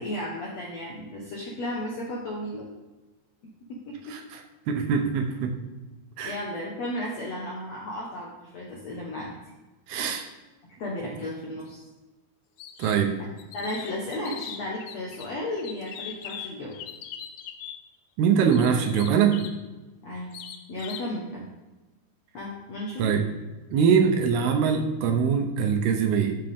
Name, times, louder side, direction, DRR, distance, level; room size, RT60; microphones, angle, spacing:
voice 1, 0.0-2.6 3.7-4.2 6.2-9.3 10.8-11.8 13.5-16.8 20.0-20.3 20.7-21.5 22.3-23.1, left 1 dB, 65° left, -4 dB, 1.7 m, -34 dB
voice 2, 4.1-4.4 4.7-5.6 6.2-6.4 9.9-10.3 12.8-13.2 18.2-19.5 23.0-23.3 23.7-26.3, right 7 dB, 75° right, 4 dB, 2.7 m, -23 dB
sound 1, 12.6-13.0 13.4-15.3 15.6-17.8 18.5-19.6 20.3-21.1, left 9 dB, 80° left, 2.2 m, -40 dB
12.5 x 6.4 x 3.6 m, 1.1 s
omnidirectional pair, 4.8 m